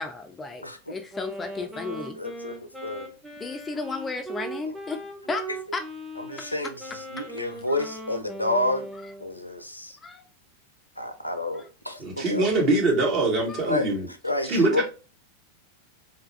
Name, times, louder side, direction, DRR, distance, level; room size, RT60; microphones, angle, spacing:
voice 1, 0.0-2.2 3.4-5.0 5.3-5.4 5.7-5.8 7.7-7.9 10.0-10.2 11.6-11.7 13.5-13.7, left 4 dB, 15° left, 0.3 m, -33 dB
voice 2, 0.6-1.0 1.9-3.1 6.3-8.9 9.2-10.0 11.0-12.5 13.7-13.9 14.2-14.8, left 1 dB, 85° left, 0.4 m, -30 dB
Wind instrument woodwind instrument, 1.1-9.3, right 1 dB, 5° right, 0.7 m, -39 dB
voice 3, 12.0-14.1 14.5-14.8, right 2 dB, 35° right, 1.1 m, -23 dB
3.2 x 2.3 x 3.1 m
figure-of-eight pair, 90°, 0 cm